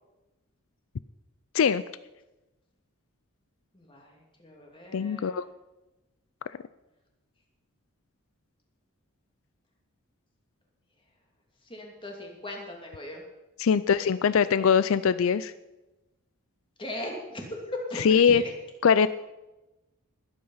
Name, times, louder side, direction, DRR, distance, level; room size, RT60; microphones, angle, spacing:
voice 1, 3.7-5.4 11.6-13.2 16.8-18.5, left 1 dB, 25° left, 1 dB, 2.6 m, -38 dB
voice 2, 4.9-5.4 13.6-15.5 18.0-18.4 18.8-19.1, left 7 dB, 70° left, 15 dB, 0.4 m, -22 dB
20.0 x 8.8 x 5.6 m, 1.0 s
head